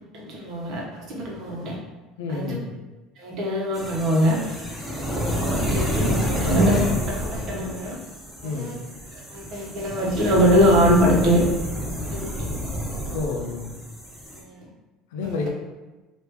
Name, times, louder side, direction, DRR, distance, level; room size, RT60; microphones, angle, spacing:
voice 1, 0.1-1.8 2.3-2.6 3.2-4.4 5.0-8.0 8.5-8.7 9.1-11.4 12.1-12.6 14.3-14.7 15.2-15.3, equal, 55° right, -3 dB, 1.0 m, -23 dB
voice 2, 2.2-2.7 8.4-8.8 12.3-12.5 13.1-13.7 15.1-15.5, left 4 dB, 85° left, 2 dB, 0.5 m, -30 dB
sound 1, 3.7-14.4, equal, ahead, 1.2 m, -29 dB
2.9 x 2.5 x 3.4 m, 1.1 s
supercardioid pair, 95°, 0 cm